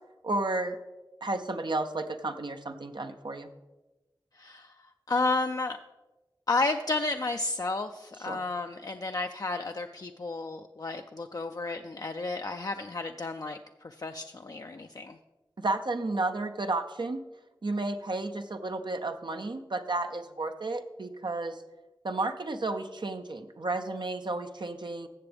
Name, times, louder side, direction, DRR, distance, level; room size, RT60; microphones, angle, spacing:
voice 1, 0.2-0.8 1.2-3.5 8.2-8.4 15.6-17.2 17.6-21.6 22.0-25.1, right 2 dB, 65° right, 6 dB, 0.5 m, -32 dB
voice 2, 4.3-4.7 5.1-5.8 6.5-15.2, left 3 dB, 45° left, 5 dB, 0.4 m, -32 dB
15.0 x 6.9 x 3.4 m, 1.1 s
wide cardioid pair, 55°, 9 cm